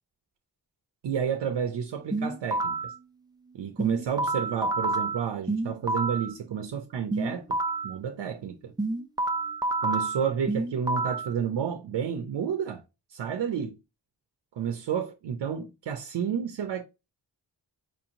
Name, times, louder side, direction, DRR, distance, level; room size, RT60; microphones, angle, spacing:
voice 1, 1.0-2.9 3.5-8.7 9.8-12.8 13.1-13.8 14.5-16.8, right 7 dB, 90° right, 0.5 m, -31 dB
sound 1, 2.1-3.0 3.8-6.3 7.1-8.0 8.8-11.3, right 2 dB, 10° right, 0.3 m, -29 dB
4.7 x 2.8 x 2.5 m
wide cardioid pair, 75°, 41 cm